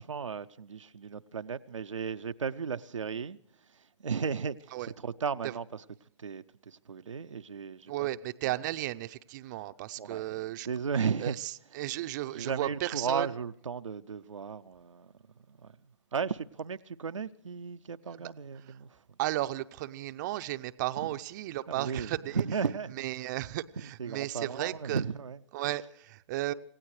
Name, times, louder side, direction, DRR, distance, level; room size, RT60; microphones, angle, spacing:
voice 1, 0.0-5.8 6.2-7.9 10.0-11.4 12.3-19.2 21.0-21.1 21.7-23.0 24.0-25.4, right 6 dB, 85° right, 0.6 m, -35 dB
voice 2, 7.9-10.7 11.2-13.3 18.2-18.3 18.7-18.8 19.2-22.4 23.0-25.0 25.5-26.5, right 16 dB, 40° right, 0.6 m, -34 dB
27.5 x 16.5 x 3.2 m
hypercardioid pair, 130°, 16 cm